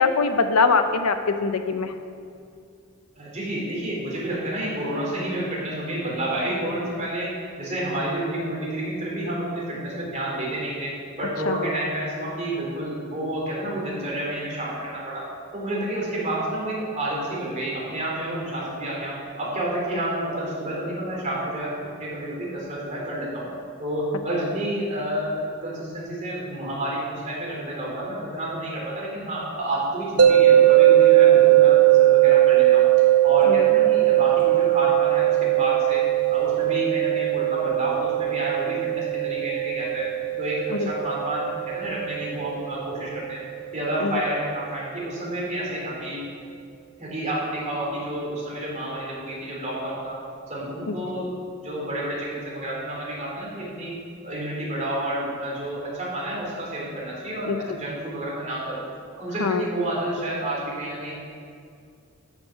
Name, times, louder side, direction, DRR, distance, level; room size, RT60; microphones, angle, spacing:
voice 1, 0.0-1.9 11.5-11.6 40.7-40.9 44.0-44.1 50.9-51.0 57.5-57.8 59.4-59.6, left 4 dB, 80° left, 8 dB, 0.7 m, -22 dB
voice 2, 3.2-10.9 11.2-15.3 15.5-23.5 23.8-32.9 33.2-36.0 36.3-40.1 40.4-43.4 43.7-46.2 47.0-50.2 50.5-53.9 54.2-58.8 59.2-61.1, right 1 dB, 30° right, -4 dB, 2.9 m, -29 dB
sound 1, 30.2-43.3, right 14 dB, 90° right, 0.8 m, -19 dB
13.0 x 6.0 x 5.6 m, 2.3 s
head